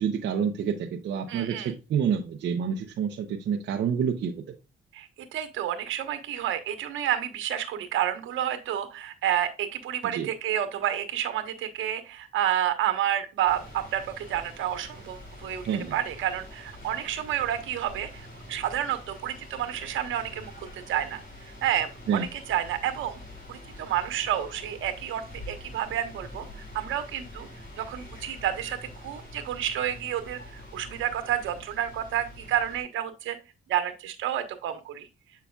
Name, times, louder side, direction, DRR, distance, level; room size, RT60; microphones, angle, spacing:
voice 1, 0.0-4.3 10.1-10.3 15.7-15.9 22.1-22.3, right 7 dB, 60° right, 3 dB, 0.8 m, -28 dB
voice 2, 1.3-1.7 4.9-15.6 15.9-21.2 21.6-23.2 23.5-26.5 26.7-27.5 27.8-28.8 29.0-33.4 33.7-35.1, right 11 dB, 80° right, 8 dB, 1.2 m, -30 dB
sound 1, 13.5-32.8, left 1 dB, 45° left, 4.0 m, -45 dB
8.0 x 5.8 x 2.3 m, 0.29 s
cardioid pair, 90°, 20 cm